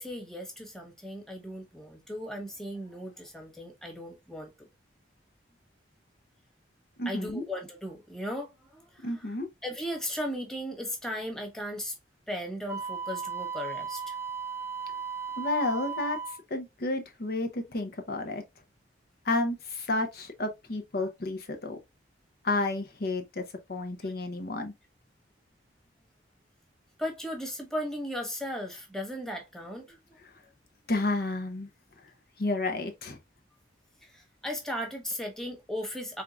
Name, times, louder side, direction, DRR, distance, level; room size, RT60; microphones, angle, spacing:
voice 1, 0.0-4.7 7.0-9.3 9.6-12.0 12.3-14.2 27.0-30.2 34.0-36.2, equal, 5° left, 1.2 m, -37 dB
voice 2, 7.0-7.4 9.0-9.5 15.4-16.2 16.5-18.4 19.2-21.8 22.4-23.4 23.7-24.7 30.9-31.7 32.4-33.2, left 2 dB, 55° left, 0.7 m, -31 dB
Wind instrument woodwind instrument, 12.7-16.4, right 6 dB, 15° right, 0.4 m, -36 dB
4.5 x 3.5 x 2.4 m
head